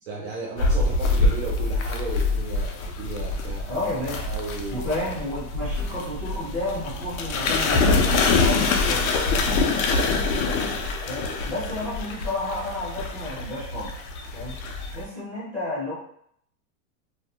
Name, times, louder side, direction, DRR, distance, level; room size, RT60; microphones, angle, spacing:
voice 1, 0.1-3.8 4.2-4.9, right 3 dB, 50° right, -3 dB, 0.5 m, -35 dB
sound 1, 0.6-15.0, left 3 dB, 90° left, 0.6 m, -25 dB
voice 2, 3.7-4.2 4.7-10.0 10.3-13.9 14.3-14.5 14.9-15.9, left 1 dB, 5° right, -13 dB, 0.8 m, -32 dB
2.3 x 2.1 x 2.8 m, 0.68 s
supercardioid pair, 180°, 41 cm